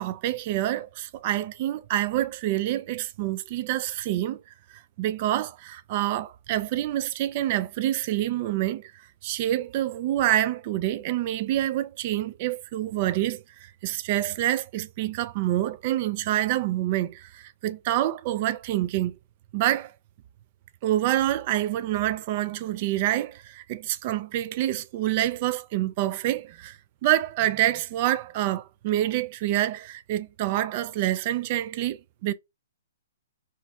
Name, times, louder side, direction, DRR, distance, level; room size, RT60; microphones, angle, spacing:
voice 1, 0.0-4.4 4.7-8.9 9.2-19.2 19.5-19.9 20.8-32.3, right 13 dB, 40° right, 0.3 m, -27 dB
2.5 x 2.1 x 3.8 m
hypercardioid pair, 135°, 0 cm